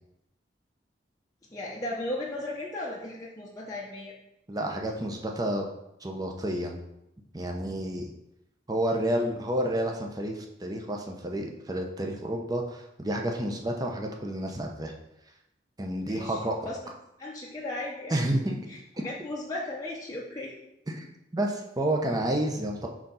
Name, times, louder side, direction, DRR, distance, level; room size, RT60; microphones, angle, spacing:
voice 1, 1.5-4.2 16.0-16.8 17.2-18.2 18.7-20.5, left 1 dB, 20° left, -5 dB, 0.7 m, -36 dB
voice 2, 4.5-5.7 6.0-6.8 7.3-8.1 8.7-14.9 15.8-16.6 18.1-18.6 20.9-21.1 21.3-22.9, right 1 dB, 20° right, 2 dB, 0.8 m, -30 dB
4.9 x 3.8 x 5.6 m, 0.86 s
head